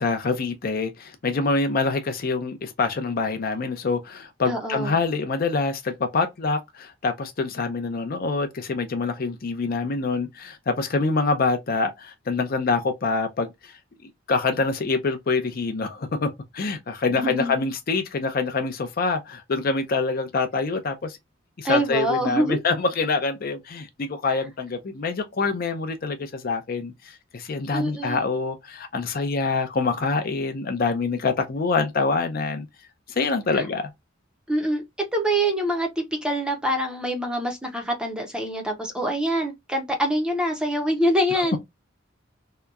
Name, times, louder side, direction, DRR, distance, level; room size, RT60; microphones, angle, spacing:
voice 1, 0.0-13.7 14.3-21.2 21.6-32.7 33.2-33.9, left 4 dB, 50° left, 0.5 m, -25 dB
voice 2, 4.5-5.0 17.1-17.6 21.6-22.6 27.7-28.3 33.5-33.6 34.5-34.8 35.1-41.6, equal, 5° right, 0.5 m, -25 dB
2.8 x 2.2 x 2.3 m
head